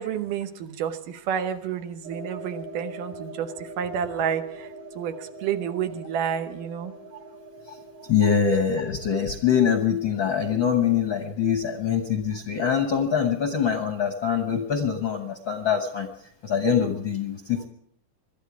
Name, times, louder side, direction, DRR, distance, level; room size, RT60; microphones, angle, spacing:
voice 1, 0.0-7.2 8.2-8.4 11.6-11.8, right 8 dB, 80° right, 8 dB, 2.6 m, -30 dB
sound 1, 2.0-11.6, right 2 dB, 55° right, 3.5 m, -43 dB
voice 2, 8.1-16.1 16.4-17.7, left 7 dB, 65° left, 5 dB, 1.2 m, -24 dB
22.5 x 13.0 x 4.8 m, 0.69 s
omnidirectional pair, 3.7 m